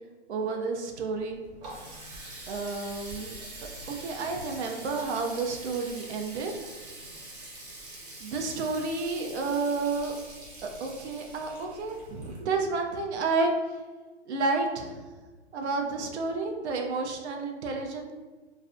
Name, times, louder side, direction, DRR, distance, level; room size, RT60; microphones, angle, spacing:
voice 1, 0.3-1.4 2.5-3.3 3.9-6.5 8.2-10.2 10.6-13.5 14.3-15.0 15.5-18.1, right 3 dB, 80° right, 3 dB, 0.5 m, -30 dB
Water tap faucet, 1.2-12.8, right 1 dB, 40° right, 0.7 m, -44 dB
2.4 x 2.1 x 2.4 m, 1.3 s
hypercardioid pair, 155°, 33 cm